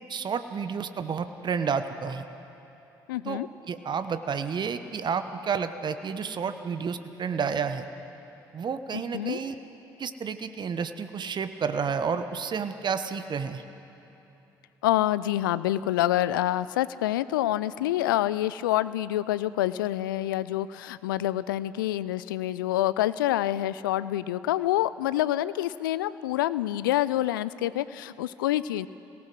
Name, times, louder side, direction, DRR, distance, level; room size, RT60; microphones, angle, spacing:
voice 1, 0.1-2.2 3.2-3.4 3.7-7.9 8.5-9.5 10.0-13.6, right 6 dB, 45° right, 10 dB, 1.1 m, -30 dB
voice 2, 3.1-3.5 9.1-9.4 14.8-28.9, left 14 dB, 80° left, 17 dB, 0.4 m, -27 dB
26.0 x 18.0 x 6.2 m, 3.0 s
hypercardioid pair, 50°, 11 cm